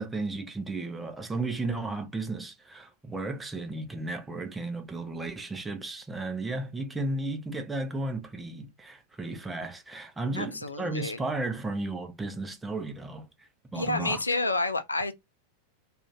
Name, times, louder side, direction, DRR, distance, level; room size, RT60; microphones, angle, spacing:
voice 1, 0.0-14.2, right 2 dB, 10° right, 0.6 m, -34 dB
voice 2, 10.4-11.2 13.7-15.1, left 2 dB, 80° left, 0.3 m, -29 dB
2.4 x 2.4 x 3.2 m
figure-of-eight pair, 90°, 0 cm